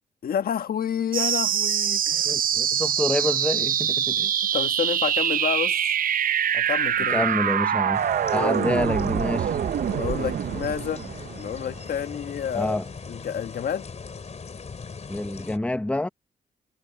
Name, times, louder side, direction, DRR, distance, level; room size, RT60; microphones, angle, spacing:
voice 1, 0.2-2.3 4.5-5.8 6.5-7.3 8.3-8.6 9.9-11.0 11.4-12.8 13.1-13.9, left 8 dB, 70° left, 1.4 m, -29 dB
sound 1, 1.1-12.1, right 9 dB, 60° right, 0.7 m, -25 dB
voice 2, 2.2-4.3 7.1-8.0 8.3-9.5 12.5-12.9 15.1-16.1, left 1 dB, 10° left, 0.9 m, -27 dB
sound 2, 7.9-15.6, left 5 dB, 45° left, 4.1 m, -40 dB
cardioid pair, 75°, 16 cm